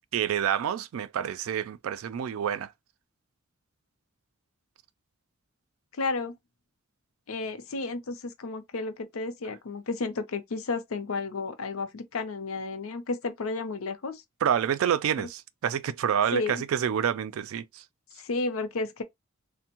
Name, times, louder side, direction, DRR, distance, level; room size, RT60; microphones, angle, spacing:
voice 1, 0.1-2.7 14.4-17.8, right 9 dB, 80° right, 0.3 m, -28 dB
voice 2, 6.0-6.3 7.3-14.2 15.2-15.3 16.3-16.6 18.2-19.0, left 3 dB, 85° left, 0.6 m, -32 dB
3.4 x 2.1 x 2.9 m
head